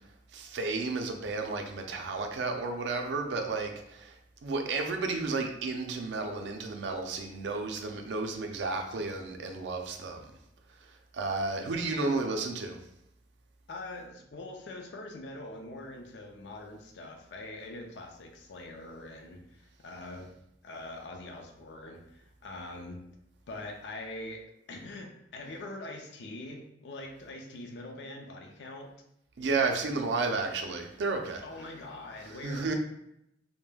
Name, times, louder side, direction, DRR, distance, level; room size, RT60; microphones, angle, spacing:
voice 1, 0.3-4.1 4.4-10.3 11.1-12.8 29.4-31.4 32.4-32.7, right 3 dB, 80° right, 4 dB, 0.4 m, -32 dB
voice 2, 13.7-20.3 20.6-23.0 23.5-28.9 31.4-32.7, left 2 dB, 75° left, 2 dB, 0.4 m, -43 dB
3.2 x 2.1 x 2.2 m, 0.81 s
head